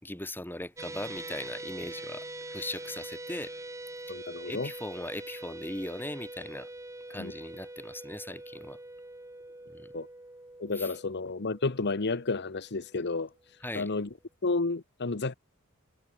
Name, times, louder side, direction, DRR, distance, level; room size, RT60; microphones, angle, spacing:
voice 1, 0.0-3.5 4.5-6.7 7.1-8.8 9.7-9.9 10.7-10.9 13.6-13.9, left 1 dB, 10° left, 4.8 m, -39 dB
sound 1, 0.8-13.1, right 2 dB, 15° right, 6.7 m, -44 dB
voice 2, 4.1-4.7 7.2-7.3 9.9-10.1 10.6-13.3 13.7-14.1 14.4-15.3, left 3 dB, 55° left, 1.0 m, -31 dB
head